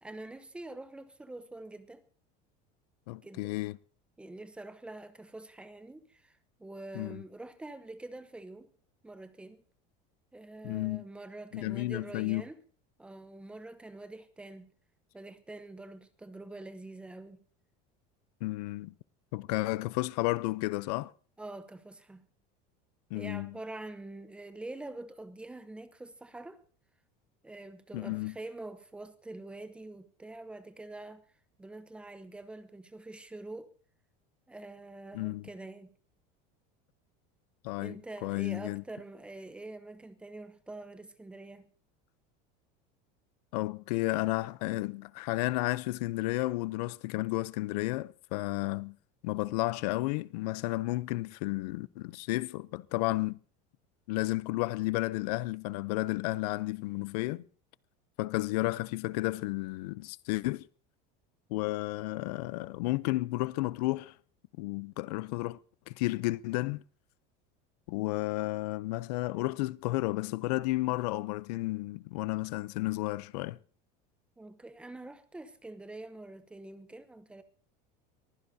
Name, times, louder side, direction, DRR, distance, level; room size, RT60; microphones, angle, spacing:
voice 1, 0.0-2.0 3.2-3.5 4.2-8.7 9.0-9.6 10.3-12.6 13.0-14.7 15.1-17.4 21.4-22.3 23.1-26.6 27.4-31.2 31.6-33.7 34.5-35.9 37.8-41.7 74.4-77.4, right 2 dB, 5° right, 0.8 m, -45 dB
voice 2, 3.1-3.8 6.9-7.2 10.6-11.0 11.5-12.4 18.4-18.9 19.3-21.1 23.1-23.6 27.9-28.3 35.1-35.5 37.6-38.0 38.2-38.8 43.5-49.0 49.2-53.4 54.1-57.4 58.2-60.7 61.5-64.1 64.6-65.6 65.9-66.8 67.9-73.6, left 20 dB, 90° left, 0.6 m, -32 dB
23.0 x 15.5 x 2.7 m
cardioid pair, 180°, 20 cm